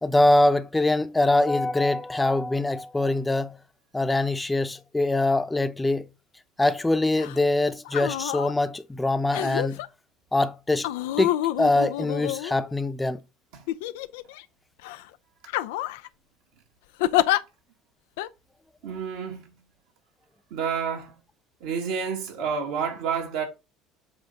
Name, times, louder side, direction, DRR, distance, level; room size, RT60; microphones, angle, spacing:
voice 1, 0.0-3.6 3.9-6.0 6.6-9.8 10.3-10.9 11.2-11.3 11.6-13.2, left 2 dB, 10° left, 0.7 m, -23 dB
sound 1, 7.2-7.4 7.8-8.5 9.3-9.9 10.8-12.9 13.7-14.4 14.8-15.0 15.5-16.1 17.0-17.4 18.2-18.3, left 14 dB, 85° left, 0.4 m, -27 dB
voice 2, 18.8-19.5 20.5-21.2 21.6-23.5, right 6 dB, 80° right, 1.9 m, -29 dB
7.7 x 2.6 x 5.7 m
supercardioid pair, 90°, 0 cm